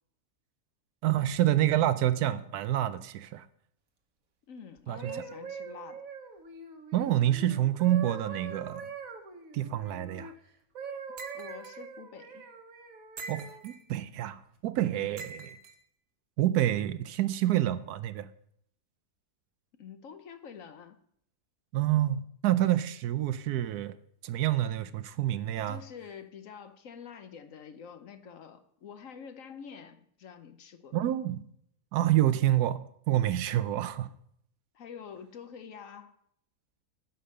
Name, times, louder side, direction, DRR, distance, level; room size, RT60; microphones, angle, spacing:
voice 1, 1.0-3.5 4.9-5.2 6.9-8.9 9.5-10.3 13.3-15.5 16.4-18.3 21.7-24.0 24.2-25.8 30.9-31.5 31.9-34.1, right 13 dB, 85° right, 1.2 m, -28 dB
voice 2, 4.5-6.0 11.3-12.5 14.9-15.1 19.7-21.0 25.7-31.0 34.7-36.2, left 7 dB, 65° left, 1.1 m, -47 dB
sound 1, 4.8-10.3 10.7-13.6 14.3-14.5, right 5 dB, 65° right, 1.5 m, -43 dB
sound 2, 11.2-11.8 13.2-13.8 15.2-15.8, right 4 dB, 50° right, 0.9 m, -44 dB
10.0 x 5.3 x 6.6 m
omnidirectional pair, 1.6 m